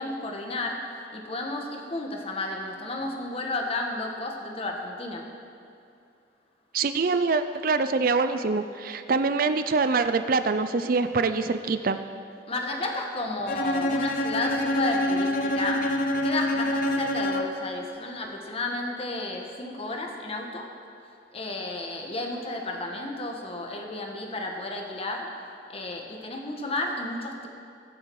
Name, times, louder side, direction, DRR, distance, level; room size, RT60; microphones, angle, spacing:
voice 1, 0.0-5.3 12.5-15.9 16.2-20.7 21.3-25.3 25.7-27.5, left 2 dB, 35° left, 1 dB, 1.5 m, -32 dB
voice 2, 6.7-12.0, right 4 dB, 55° right, 10 dB, 0.5 m, -24 dB
Bowed string instrument, 13.5-17.7, left 1 dB, 50° left, 0.8 m, -26 dB
21.0 x 7.5 x 4.8 m, 2.4 s
head